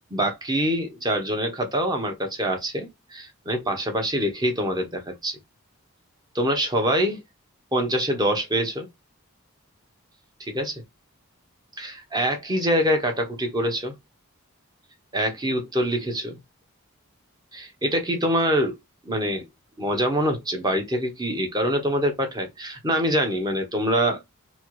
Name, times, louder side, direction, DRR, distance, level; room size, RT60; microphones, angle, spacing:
voice 1, 0.1-5.4 6.3-7.2 7.7-8.9 10.4-10.8 11.8-13.9 15.1-16.4 17.5-18.8 19.1-19.4 19.8-24.2, equal, 20° right, 0.8 m, -25 dB
4.2 x 2.0 x 3.0 m
head